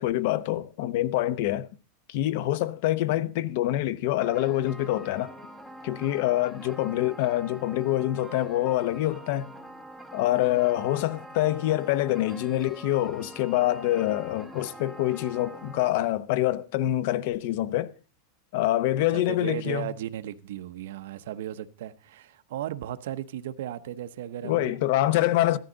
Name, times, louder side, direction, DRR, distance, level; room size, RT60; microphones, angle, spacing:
voice 1, 0.0-1.7 2.1-5.3 5.8-9.5 10.1-17.9 18.5-19.9 24.4-25.6, left 14 dB, 50° left, 0.9 m, -26 dB
sound 1, 4.2-15.9, right 1 dB, ahead, 1.3 m, -45 dB
voice 2, 19.0-25.2, right 12 dB, 70° right, 0.9 m, -36 dB
15.0 x 13.0 x 4.0 m
supercardioid pair, 170°, 0 cm